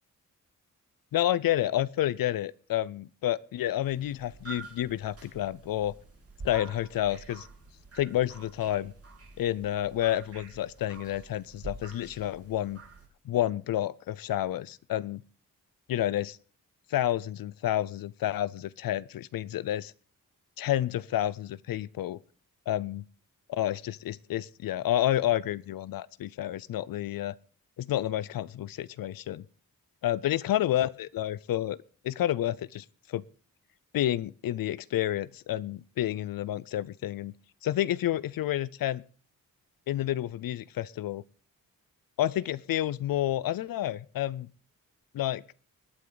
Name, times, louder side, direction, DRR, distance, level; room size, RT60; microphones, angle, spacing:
voice 1, 1.1-5.9 6.4-7.5 8.0-8.9 9.4-12.8 13.3-15.2 15.9-16.4 16.9-19.9 20.6-22.2 22.7-23.1 23.5-27.3 27.8-29.4 30.0-31.8 32.0-33.2 33.9-37.3 37.6-39.0 39.9-41.2 42.2-44.5 45.1-45.4, left 13 dB, 85° left, 0.5 m, -30 dB
sound 1, 3.8-13.1, right 3 dB, 45° right, 3.4 m, -48 dB
21.0 x 9.0 x 3.9 m
wide cardioid pair, 95°, 34 cm